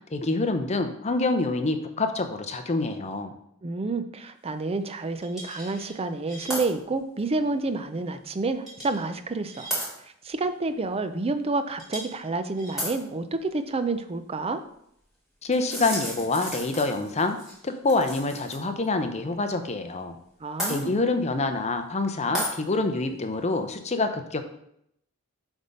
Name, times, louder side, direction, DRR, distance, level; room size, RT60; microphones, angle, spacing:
voice 1, 0.0-3.3 15.4-17.4 17.6-20.2 20.7-24.4, left 3 dB, 30° left, 7 dB, 0.6 m, -26 dB
voice 2, 3.6-9.7 10.0-14.6 20.4-21.0, right 3 dB, 25° right, 10 dB, 0.5 m, -29 dB
sound 1, 5.2-5.9 6.3-6.7 7.2-7.3 8.7-9.0 9.5-9.9 11.8-12.2 12.6-13.0 15.5-18.6 18.8-18.9 20.6-20.8 22.3-22.5, equal, ahead, 2.6 m, -33 dB
8.0 x 3.6 x 5.2 m, 0.74 s
head